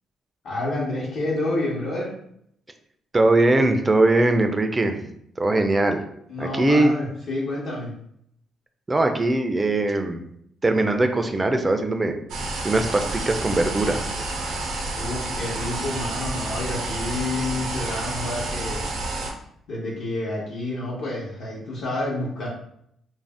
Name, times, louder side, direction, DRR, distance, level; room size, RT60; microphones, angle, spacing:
voice 1, 0.4-2.2 6.3-7.9 14.9-18.9 19.7-22.5, left 2 dB, 70° left, -6 dB, 0.9 m, -29 dB
voice 2, 3.1-5.1 5.4-6.0 6.4-6.9 8.9-10.2 10.6-12.2 12.6-14.0, right 2 dB, 20° right, 6 dB, 0.4 m, -21 dB
sound 1, 12.3-19.3, right 2 dB, 85° right, 0.5 m, -29 dB
2.5 x 2.0 x 3.3 m, 0.72 s
cardioid pair, 90°, 0 cm